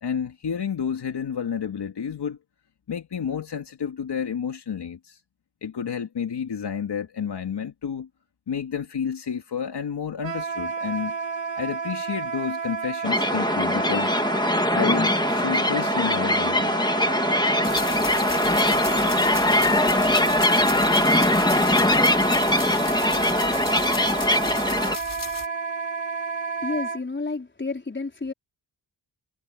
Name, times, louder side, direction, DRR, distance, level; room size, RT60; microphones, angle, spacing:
voice 1, 0.0-2.4 2.9-5.2 5.6-8.1 8.5-11.1 11.6-14.1 14.7-16.7, left 7 dB, 60° left, 2.9 m, -30 dB
Wind instrument woodwind instrument, 10.2-27.0, right 5 dB, 75° right, 3.4 m, -30 dB
sound 1, 13.0-25.0, left 1 dB, 10° left, 2.0 m, -22 dB
sound 2, 17.6-25.5, left 5 dB, 45° left, 5.5 m, -36 dB
voice 2, 26.6-28.3, left 3 dB, 25° left, 5.0 m, -30 dB
cardioid pair, 70°, 45 cm